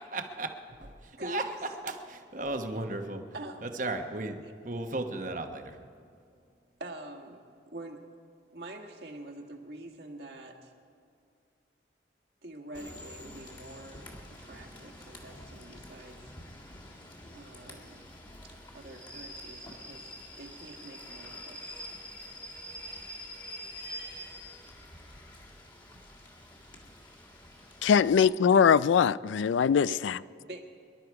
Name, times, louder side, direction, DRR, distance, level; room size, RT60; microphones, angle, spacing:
voice 1, 0.0-1.5 1.8-3.2 3.6-5.8, right 2 dB, 45° right, 1.1 m, -35 dB
voice 2, 6.8-8.1 8.5-10.7 12.4-16.3 17.3-18.0 18.4-20.1 20.4-21.6 29.9-30.0 30.4-30.7, right 1 dB, 60° right, 1.7 m, -45 dB
Rain / Train, 12.7-28.2, left 1 dB, 25° left, 1.8 m, -46 dB
voice 3, 27.8-30.2, left 7 dB, 85° left, 0.3 m, -22 dB
24.0 x 11.5 x 4.7 m
head